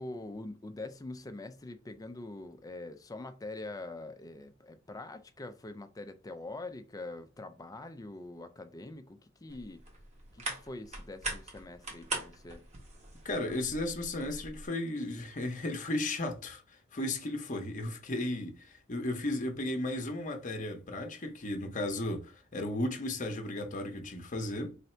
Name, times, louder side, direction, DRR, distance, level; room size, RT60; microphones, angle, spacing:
voice 1, 0.0-9.9 10.3-12.6, left 2 dB, 20° left, 0.4 m, -44 dB
sound 1, 9.5-14.7, right 2 dB, 35° right, 1.1 m, -42 dB
voice 2, 13.2-24.8, left 1 dB, 40° left, 0.8 m, -35 dB
3.2 x 2.6 x 4.3 m
head